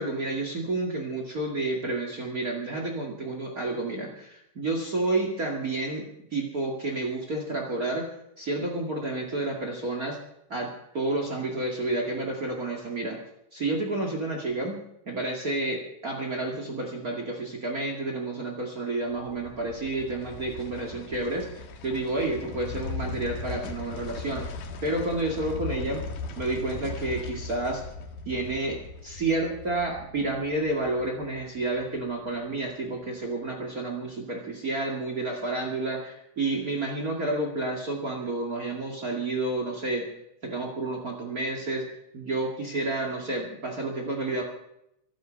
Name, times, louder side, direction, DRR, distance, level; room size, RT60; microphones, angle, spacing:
voice 1, 0.0-6.0 6.3-8.1 8.4-10.2 10.5-13.2 13.5-14.8 15.0-24.4 24.8-26.0 26.4-27.8 28.2-40.1 40.4-41.9 42.1-44.4, right 2 dB, 75° right, 1 dB, 0.8 m, -30 dB
sound 1, 19.1-32.3 32.6-32.7, left 3 dB, 60° left, 2.7 m, -39 dB
24.5 x 9.8 x 5.3 m, 0.79 s
omnidirectional pair, 5.7 m